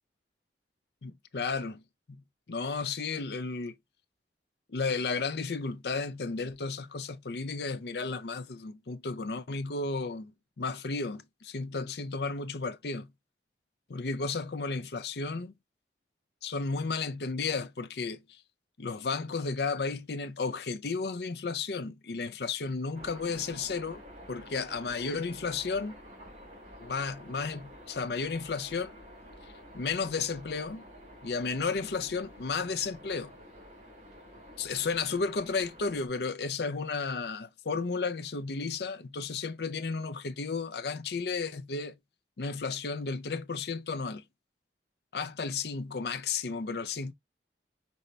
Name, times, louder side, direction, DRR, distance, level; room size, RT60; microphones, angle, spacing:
voice 1, 1.0-1.8 2.1-2.2 2.5-3.7 4.7-13.1 13.9-15.5 16.4-18.2 18.8-24.0 24.3-26.0 26.8-29.0 29.7-30.8 31.2-33.3 34.6-41.9 42.4-44.2 45.1-47.1, left 4 dB, 65° left, 0.6 m, -33 dB
sound 1, 22.9-36.1, equal, 40° right, 2.1 m, -50 dB
5.3 x 2.8 x 3.2 m
head